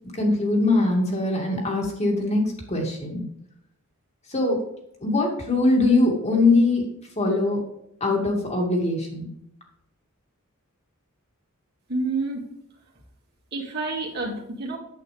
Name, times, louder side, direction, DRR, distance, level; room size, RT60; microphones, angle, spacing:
voice 1, 0.1-3.2 4.3-4.6 5.0-6.9 7.2-7.6 8.0-9.3, left 2 dB, 30° left, 0 dB, 2.4 m, -22 dB
voice 2, 11.9-12.4 13.5-14.8, right 3 dB, 50° right, -2 dB, 2.7 m, -28 dB
9.0 x 8.6 x 3.5 m, 0.77 s
head